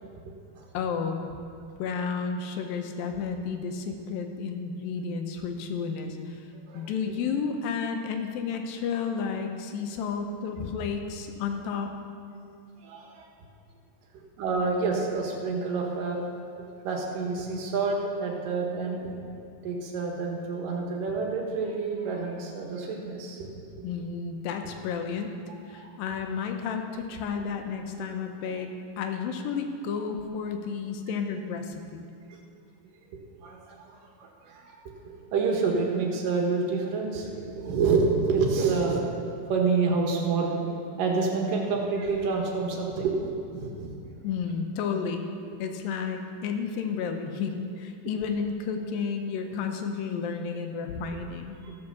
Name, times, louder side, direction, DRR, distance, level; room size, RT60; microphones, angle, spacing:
voice 1, 0.7-1.4 1.8-6.2 6.7-11.9 23.8-25.3 25.7-28.7 29.0-32.1 44.2-45.2 45.6-51.6, left 6 dB, 75° left, 5 dB, 2.4 m, -32 dB
voice 2, 12.8-13.3 14.4-16.3 16.6-19.1 19.6-23.6 25.7-25.9 27.4-27.5 28.0-28.1 32.3-32.4 33.4-34.7 35.1-40.6 41.0-44.0 51.6-51.7, right 4 dB, 65° right, 0 dB, 2.8 m, -28 dB
15.0 x 5.8 x 7.0 m, 2.4 s
omnidirectional pair, 4.5 m